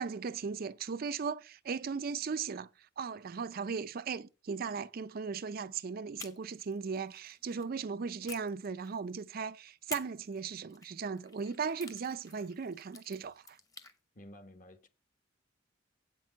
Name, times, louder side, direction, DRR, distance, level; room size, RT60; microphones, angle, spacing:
voice 1, 0.0-2.7 3.0-13.6, right 5 dB, 50° right, 0.4 m, -37 dB
sound 1, 6.2-7.7 8.3-9.3 9.9-14.0, left 4 dB, 20° left, 1.0 m, -51 dB
voice 2, 14.1-14.9, left 1 dB, 45° left, 1.1 m, -52 dB
8.2 x 6.1 x 5.7 m
head